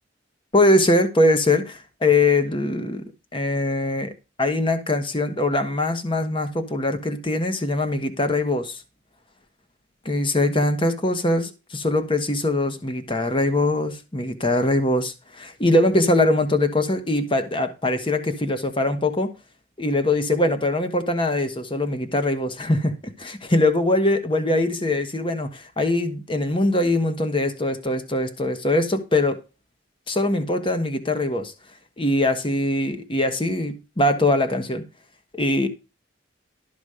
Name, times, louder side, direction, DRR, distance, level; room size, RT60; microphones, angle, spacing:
voice 1, 0.5-3.0 3.3-4.1 4.4-8.8 10.0-19.3 19.8-29.4 30.1-31.5 32.0-34.8 35.3-35.7, left 2 dB, 25° left, 1.2 m, -22 dB
12.5 x 6.1 x 4.9 m
head